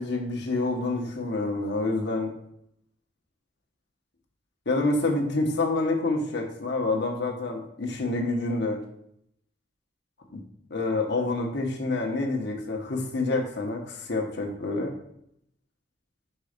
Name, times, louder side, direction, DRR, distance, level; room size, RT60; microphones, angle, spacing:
voice 1, 0.0-2.3 4.6-8.8 10.3-10.4 10.7-14.9, left 2 dB, 65° left, 2 dB, 1.2 m, -27 dB
5.5 x 4.1 x 5.1 m, 0.72 s
head